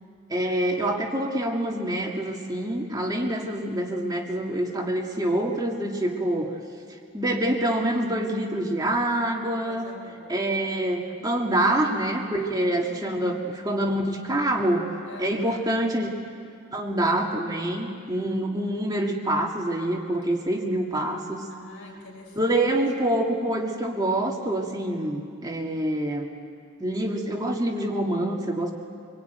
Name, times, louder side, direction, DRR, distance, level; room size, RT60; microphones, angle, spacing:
voice 1, 0.3-6.5 7.1-9.9 10.3-14.9 15.2-16.1 16.7-21.5 22.3-26.3 26.8-28.7, right 1 dB, 20° right, 0 dB, 2.0 m, -26 dB
voice 2, 9.6-10.7 11.2-11.6 11.9-12.0 12.8-13.6 15.1-15.8 18.0-18.3 18.6-18.7 21.5-22.7, left 2 dB, 60° left, 0 dB, 6.1 m, -45 dB
25.5 x 22.5 x 9.2 m, 2.2 s
head